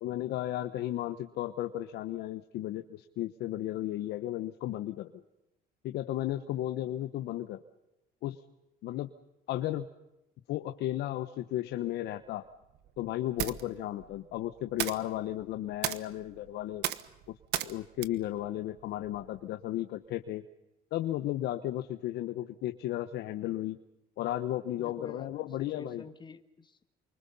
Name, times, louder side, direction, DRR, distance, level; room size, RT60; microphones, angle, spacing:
voice 1, 0.0-5.1 5.8-7.6 8.2-8.4 8.8-9.1 9.5-9.9 10.5-12.5 13.0-16.8 17.3-17.4 17.6-20.4 20.9-23.8 24.2-26.0, left 13 dB, 80° left, 10 dB, 1.2 m, -34 dB
sound 1, 12.2-19.5, right 14 dB, 85° right, 1.3 m, -39 dB
voice 2, 24.8-26.8, left 4 dB, 25° left, 9 dB, 2.1 m, -48 dB
28.5 x 25.0 x 5.5 m, 0.92 s
cardioid pair, 110°, 17 cm